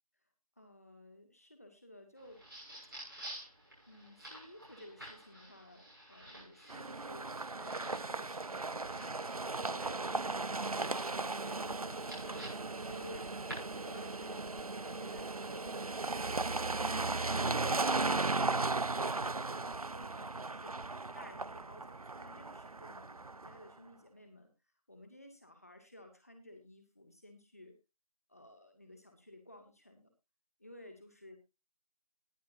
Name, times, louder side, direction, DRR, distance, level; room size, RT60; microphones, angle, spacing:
voice 1, 0.6-2.4 3.9-9.1 9.6-10.6 10.9-13.4 13.8-24.5 24.9-27.8 28.3-30.1 30.6-31.4, left 1 dB, 25° left, 5 dB, 2.2 m, -56 dB
sound 1, 2.2-14.2, right 1 dB, 35° right, 6.8 m, -52 dB
sound 2, 6.7-23.7, right 3 dB, 70° right, 0.6 m, -36 dB
sound 3, 12.9-22.2 22.4-22.8, left 1 dB, 75° left, 2.2 m, -57 dB
20.5 x 7.3 x 2.7 m, 0.26 s
figure-of-eight pair, 175°, 19 cm